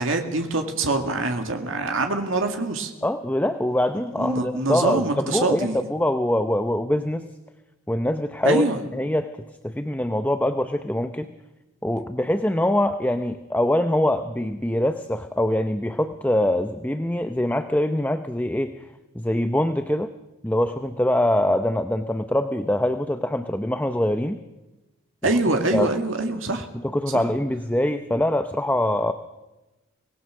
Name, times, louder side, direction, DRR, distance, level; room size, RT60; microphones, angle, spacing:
voice 1, 0.0-2.9 4.2-5.8 8.4-8.8 25.2-26.7 27.1-27.2, right 2 dB, 65° right, 4 dB, 2.2 m, -24 dB
voice 2, 3.0-7.3 7.9-8.6 8.9-9.3 9.6-11.3 11.8-18.8 19.1-20.1 20.4-24.4 25.7-25.9 26.7-29.1, left 1 dB, 10° left, 8 dB, 0.7 m, -23 dB
25.0 x 18.5 x 6.4 m, 1.0 s
head